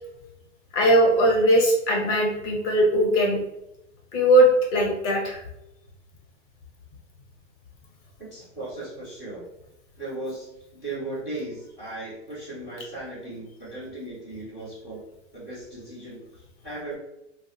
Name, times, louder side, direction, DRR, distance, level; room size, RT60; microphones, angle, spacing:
voice 1, 0.7-3.4 4.1-5.4, right 1 dB, 30° left, 0 dB, 0.7 m, -20 dB
voice 2, 8.3-9.4 10.0-10.5 10.8-15.0 15.3-17.0, right 2 dB, ahead, -13 dB, 0.3 m, -37 dB
3.2 x 2.3 x 2.7 m, 0.86 s
supercardioid pair, 160°, 36 cm